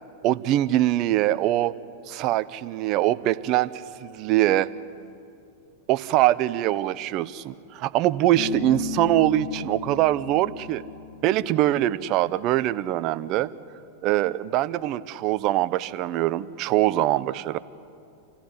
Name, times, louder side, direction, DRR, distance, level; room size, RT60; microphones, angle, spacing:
voice 1, 0.2-1.7 2.1-3.7 4.0-4.7 5.9-10.8 11.2-13.5 14.0-17.6, right 14 dB, 50° right, 16 dB, 0.8 m, -23 dB
Bass guitar, 8.4-11.8, left 6 dB, 50° left, 3.7 m, -36 dB
27.5 x 14.5 x 9.9 m, 2.5 s
hypercardioid pair, 105°, 0 cm